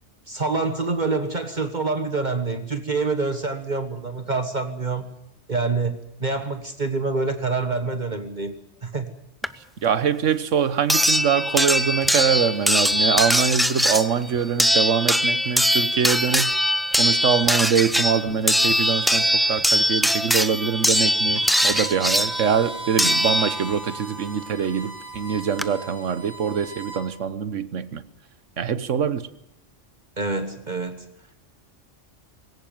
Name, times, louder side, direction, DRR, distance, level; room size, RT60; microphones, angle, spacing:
voice 1, 0.3-5.1 5.5-8.5 8.8-9.1 30.2-31.0, right 3 dB, 40° right, 1.5 m, -26 dB
sound 1, 9.4-9.5 10.9-23.9 25.2-25.3 25.6-25.7, equal, ahead, 0.5 m, -21 dB
voice 2, 9.8-16.5 17.0-28.0 28.6-29.3, right 7 dB, 90° right, 1.4 m, -24 dB
Bowed string instrument, 21.3-27.0, right 3 dB, 65° right, 4.8 m, -37 dB
20.0 x 17.5 x 9.1 m
omnidirectional pair, 1.2 m